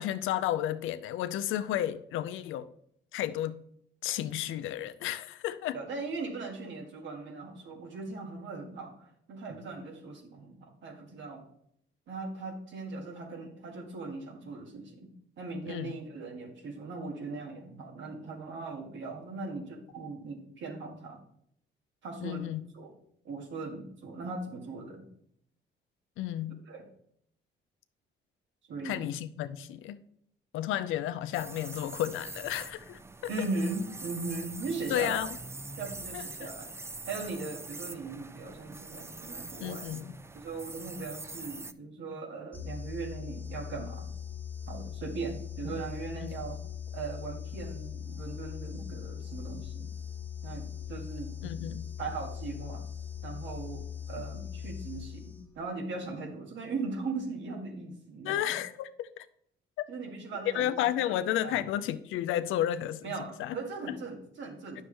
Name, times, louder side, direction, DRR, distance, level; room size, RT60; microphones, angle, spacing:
voice 1, 0.0-2.7 3.1-3.6 4.0-5.8 15.7-15.9 22.2-22.6 26.2-26.6 28.8-30.0 30.5-33.3 34.9-35.3 36.1-36.5 39.6-40.1 46.2-46.4 51.4-51.9 58.2-59.3 59.8-59.9 60.5-63.1 63.4-63.5 63.9-64.0, left 12 dB, 90° left, 12 dB, 0.6 m, -32 dB
voice 2, 5.7-11.4 12.1-21.2 22.0-22.9 23.2-25.1 26.7-26.9 28.7-29.1 33.3-35.2 35.8-36.7 37.0-39.9 40.3-44.1 44.7-46.6 46.9-49.9 50.4-51.7 52.0-52.9 53.2-58.6 59.9-60.8 61.1-61.7 63.0-64.8, right 3 dB, 70° right, 2 dB, 2.0 m, -39 dB
sound 1, 31.3-41.7, right 3 dB, 15° right, 0.4 m, -43 dB
sound 2, 42.5-55.7, left 8 dB, 5° left, 1.4 m, -40 dB
9.6 x 6.4 x 3.4 m, 0.69 s
cardioid pair, 90°, 20 cm